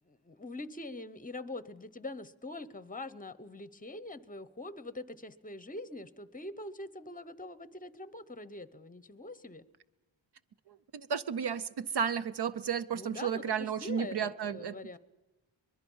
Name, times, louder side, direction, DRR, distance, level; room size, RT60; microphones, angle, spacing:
voice 1, 0.1-9.6 12.9-15.0, left 2 dB, 20° left, 0.8 m, -44 dB
voice 2, 10.7-14.8, right 7 dB, 60° right, 0.6 m, -33 dB
24.5 x 21.5 x 5.5 m
wide cardioid pair, 120°, 46 cm